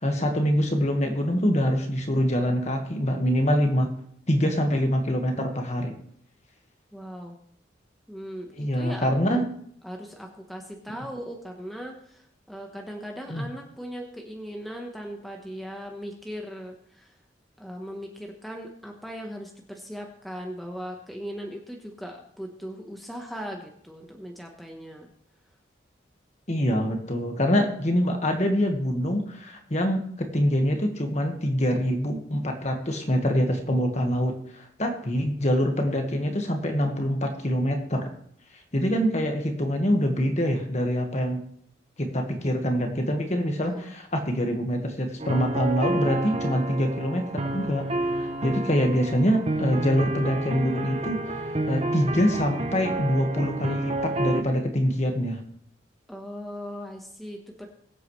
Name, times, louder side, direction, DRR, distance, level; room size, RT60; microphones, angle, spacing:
voice 1, 0.0-3.9 4.3-5.9 8.6-9.5 13.3-13.4 26.5-38.1 38.7-41.4 42.0-47.9 48.1-55.4, equal, 35° left, 4 dB, 1.6 m, -25 dB
voice 2, 6.9-7.4 8.1-9.4 9.8-17.1 17.6-25.1 43.6-43.9 56.1-57.7, equal, ahead, 1 dB, 1.1 m, -38 dB
sound 1, 45.2-54.4, right 2 dB, 30° right, 0.8 m, -30 dB
21.5 x 8.4 x 3.2 m, 0.67 s
head